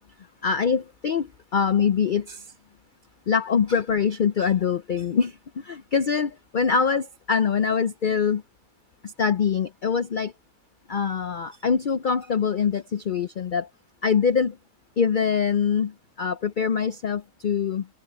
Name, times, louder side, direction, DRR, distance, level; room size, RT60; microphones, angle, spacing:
voice 1, 0.4-2.5 3.3-8.4 9.0-10.3 10.9-13.7 14.0-14.6 15.0-17.9, left 6 dB, 70° left, 0.4 m, -24 dB
omnidirectional pair, 1.6 m